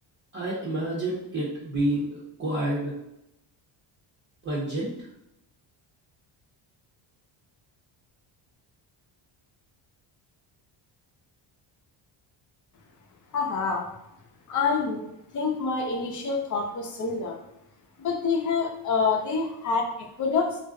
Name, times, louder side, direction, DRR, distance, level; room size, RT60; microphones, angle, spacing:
voice 1, 0.3-2.9 4.4-4.9, right 1 dB, 25° right, -7 dB, 0.7 m, -29 dB
voice 2, 13.3-13.9 14.5-15.0 15.3-17.4 18.0-20.6, left 4 dB, 40° left, 1 dB, 0.6 m, -27 dB
2.5 x 2.1 x 3.6 m, 0.85 s
cardioid pair, 135°, 48 cm